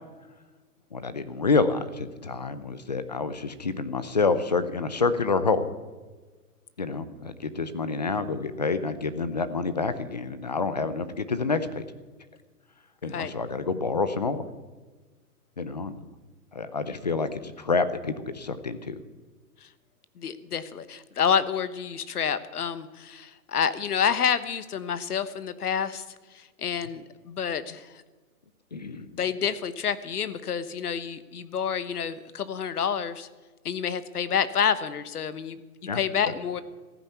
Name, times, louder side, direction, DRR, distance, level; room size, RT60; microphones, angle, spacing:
voice 1, 0.9-5.7 6.8-11.8 13.0-14.4 15.6-16.0 16.5-19.0 28.7-29.1 35.9-36.0 36.3-36.4, left 4 dB, 30° left, 13 dB, 0.6 m, -28 dB
voice 2, 20.2-26.0 26.3-27.9 29.1-33.3 33.6-35.6 35.9-36.6, left 7 dB, 75° left, 14 dB, 1.2 m, -28 dB
14.5 x 10.0 x 8.1 m, 1.3 s
hypercardioid pair, 170°, 46 cm